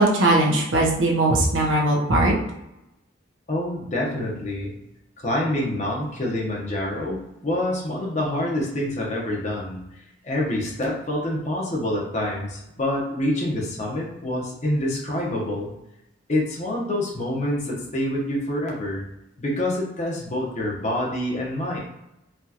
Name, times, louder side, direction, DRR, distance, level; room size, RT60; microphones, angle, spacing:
voice 1, 0.0-2.4, right 1 dB, 75° right, -2 dB, 0.9 m, -19 dB
voice 2, 3.5-4.7 5.2-9.8 10.2-15.7 16.3-19.0 19.4-21.8, left 1 dB, 35° left, -2 dB, 0.9 m, -26 dB
4.3 x 2.4 x 2.8 m, 0.88 s
head